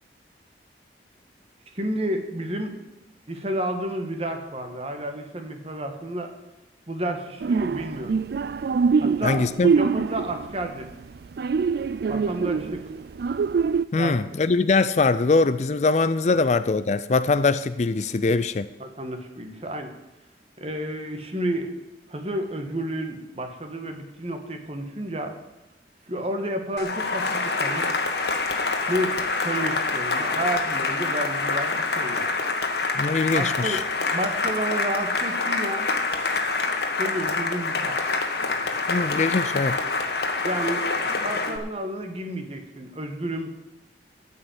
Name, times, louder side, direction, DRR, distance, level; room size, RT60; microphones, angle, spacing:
voice 1, 1.7-2.7 3.3-6.3 6.9-8.2 9.0-10.9 12.1-12.8 13.9-14.2 18.8-19.9 20.6-21.7 22.1-25.3 26.1-27.9 28.9-32.4 33.3-35.9 37.0-38.0 40.4-40.8 41.2-43.5, right 1 dB, 35° right, 1.4 m, -31 dB
sound 1, 7.4-10.8 11.1-13.8, right 5 dB, 60° right, 0.3 m, -24 dB
voice 2, 9.2-9.7 13.9-18.7 32.9-33.8 38.9-39.8, left 3 dB, 40° left, 0.4 m, -22 dB
Cheering / Applause, 26.8-41.6, left 3 dB, 70° left, 1.5 m, -26 dB
13.5 x 5.6 x 8.9 m
head